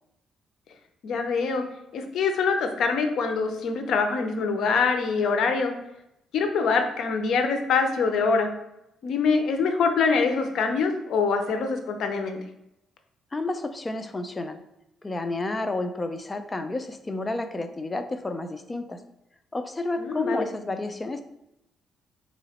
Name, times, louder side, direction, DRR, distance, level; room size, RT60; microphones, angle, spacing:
voice 1, 1.0-1.6 1.9-5.7 6.3-8.5 9.0-12.4 20.0-20.5, left 4 dB, 70° left, 6 dB, 0.6 m, -24 dB
voice 2, 13.3-14.6 15.0-19.0 19.5-21.2, left 2 dB, 20° left, 8 dB, 0.5 m, -31 dB
3.7 x 3.0 x 4.2 m, 0.85 s
cardioid pair, 90°, 0 cm